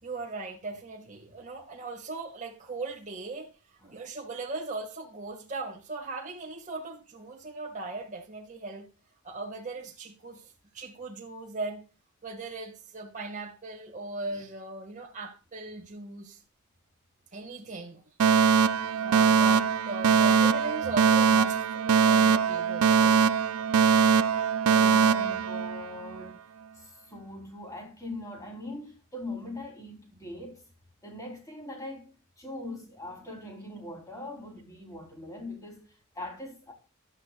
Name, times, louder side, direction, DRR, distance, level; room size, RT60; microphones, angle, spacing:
voice 1, 0.0-3.5 3.8-8.9 9.2-11.8 12.2-16.4 17.3-18.0 18.9-23.2, right 3 dB, 35° right, 2.0 m, -38 dB
Alarm, 18.2-26.2, right 6 dB, 70° right, 0.5 m, -22 dB
voice 2, 24.6-26.4 26.7-30.6 31.0-36.7, left 1 dB, 15° left, 4.0 m, -41 dB
13.0 x 9.7 x 2.4 m
head